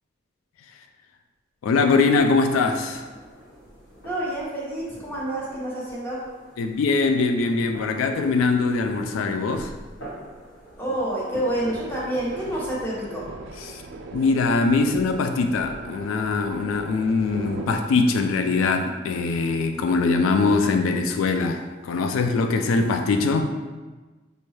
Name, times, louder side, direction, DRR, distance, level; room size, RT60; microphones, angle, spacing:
voice 1, 1.6-3.0 6.6-9.7 13.6-13.8 14.1-23.5, left 4 dB, 85° left, 6 dB, 0.3 m, -22 dB
sound 1, 2.1-12.5, equal, 65° left, 1.3 m, -44 dB
voice 2, 4.0-6.2 10.8-13.3, right 1 dB, 10° left, -6 dB, 0.9 m, -28 dB
sound 2, 11.5-17.8, right 2 dB, 60° right, 0.3 m, -39 dB
5.3 x 2.2 x 3.1 m, 1.3 s
head